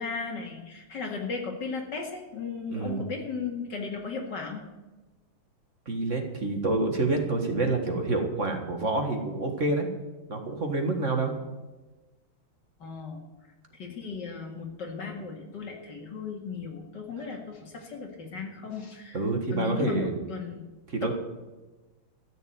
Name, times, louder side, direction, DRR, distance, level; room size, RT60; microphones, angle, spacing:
voice 1, 0.0-4.6 12.8-13.2 13.7-19.2 19.5-20.6, left 5 dB, 55° left, 1 dB, 2.6 m, -36 dB
voice 2, 2.7-3.0 5.9-9.9 10.3-11.3 19.1-20.1 20.9-21.1, right 2 dB, 40° right, 3 dB, 1.8 m, -27 dB
14.0 x 6.6 x 9.4 m, 1.1 s
omnidirectional pair, 2.3 m